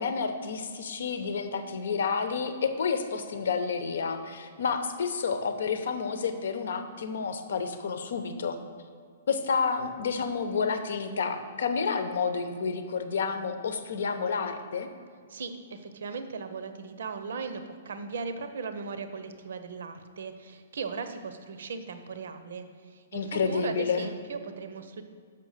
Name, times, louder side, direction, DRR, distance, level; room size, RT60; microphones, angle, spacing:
voice 1, 0.0-8.6 9.3-14.9 23.1-24.1, left 5 dB, 70° left, 9 dB, 0.8 m, -30 dB
voice 2, 15.3-25.0, right 5 dB, 70° right, 9 dB, 0.7 m, -38 dB
6.7 x 5.7 x 6.5 m, 2.1 s
hypercardioid pair, 170°, 0 cm